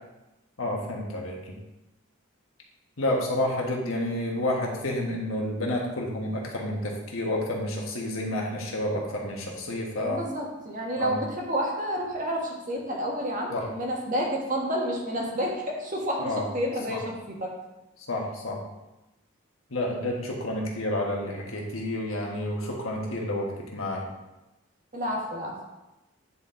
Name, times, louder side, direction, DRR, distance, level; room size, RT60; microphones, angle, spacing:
voice 1, 0.6-1.5 3.0-10.2 11.0-11.2 13.5-13.7 16.2-16.4 16.9-17.0 18.1-18.6 19.7-24.0, left 1 dB, 90° left, -1 dB, 1.5 m, -30 dB
voice 2, 10.0-17.5 24.9-25.6, equal, 40° right, -1 dB, 1.4 m, -30 dB
9.5 x 4.3 x 3.8 m, 1.0 s
head